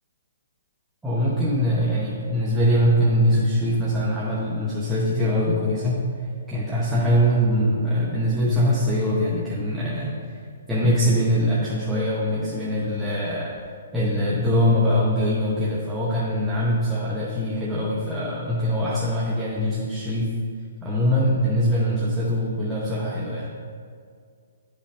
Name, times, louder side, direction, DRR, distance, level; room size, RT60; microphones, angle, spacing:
voice 1, 1.0-6.0 6.5-10.4 10.7-13.5 13.9-20.3 20.8-23.5, equal, 5° right, -7 dB, 0.6 m, -22 dB
10.0 x 5.2 x 2.8 m, 2.1 s
hypercardioid pair, 175°, 0 cm